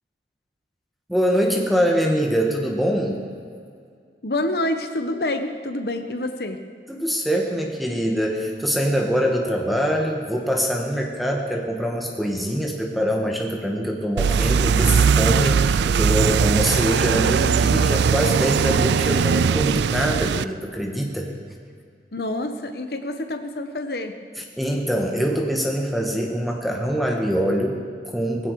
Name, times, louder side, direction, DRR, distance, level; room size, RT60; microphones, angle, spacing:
voice 1, 1.1-3.2 6.9-21.3 24.6-28.5, equal, ahead, 0 dB, 1.5 m, -24 dB
voice 2, 4.2-6.6 22.1-24.2, left 1 dB, 60° left, 7 dB, 1.2 m, -27 dB
sound 1, 14.2-20.4, right 6 dB, 75° right, 0.4 m, -19 dB
18.0 x 16.5 x 4.9 m, 2.2 s
head